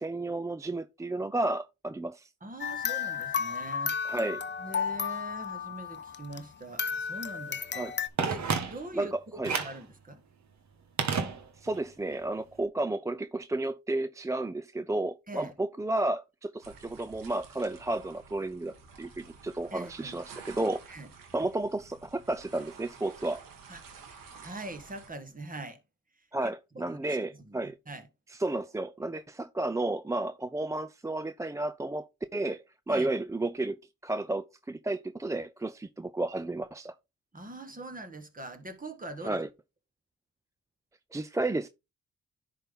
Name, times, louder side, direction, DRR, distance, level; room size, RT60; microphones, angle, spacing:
voice 1, 0.0-2.3 4.1-4.4 7.7-7.9 8.9-9.5 11.6-20.8 21.3-23.4 26.3-27.8 28.4-32.1 32.3-33.8 34.0-36.9 39.2-39.5 41.1-41.7, right 2 dB, 10° right, 0.4 m, -32 dB
voice 2, 2.4-4.1 4.6-7.9 8.2-9.1 9.5-10.2 15.3-15.5 19.7-20.2 20.9-21.1 23.7-23.8 24.4-25.8 26.2-27.2 27.4-28.1 32.9-33.1 37.3-39.4, right 2 dB, 25° right, 1.7 m, -43 dB
sound 1, 2.6-6.5 6.8-8.1, left 6 dB, 35° left, 0.9 m, -33 dB
Telephone, 8.2-9.0 9.4-9.9 11.0-11.8 12.1-12.2, right 5 dB, 60° right, 1.5 m, -31 dB
sound 2, 16.6-25.1, right 5 dB, 90° right, 1.8 m, -51 dB
10.0 x 4.1 x 3.6 m
cardioid pair, 70°, 33 cm